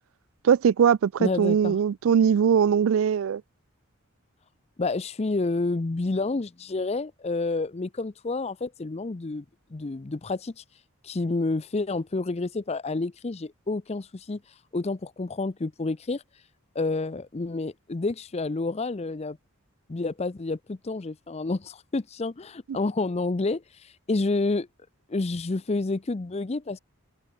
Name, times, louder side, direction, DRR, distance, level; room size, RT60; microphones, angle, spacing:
voice 1, 0.4-3.4, right 7 dB, 65° right, 0.3 m, -21 dB
voice 2, 1.2-1.8 4.8-9.4 9.7-10.6 11.0-14.4 14.7-16.2 16.7-19.4 19.9-23.6 24.1-24.7 25.1-26.8, left 3 dB, 30° left, 0.5 m, -29 dB
head